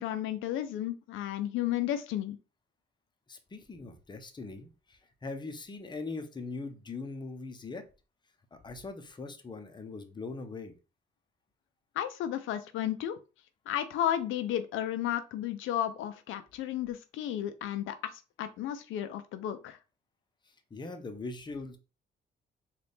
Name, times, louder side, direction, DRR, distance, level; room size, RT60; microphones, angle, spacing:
voice 1, 0.0-2.4 12.0-13.2 13.7-19.8, left 11 dB, 85° left, 0.5 m, -33 dB
voice 2, 3.3-7.9 8.5-10.7 20.5-21.8, left 3 dB, 20° left, 0.7 m, -41 dB
4.0 x 2.4 x 3.4 m
cardioid pair, 90°, 20 cm